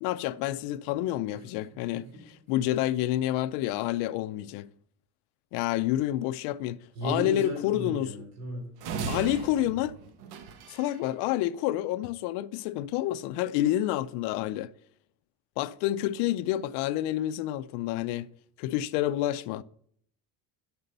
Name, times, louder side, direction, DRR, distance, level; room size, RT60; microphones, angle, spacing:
voice 1, 0.0-4.7 5.5-8.1 9.1-10.0 10.7-14.7 15.6-18.3 18.6-19.6, left 13 dB, 80° left, 0.5 m, -29 dB
voice 2, 7.0-8.7, equal, 40° right, 3.5 m, -35 dB
sound 1, 8.8-11.0, right 5 dB, 75° right, 1.3 m, -37 dB
8.1 x 6.1 x 6.6 m
cardioid pair, 180°, 39 cm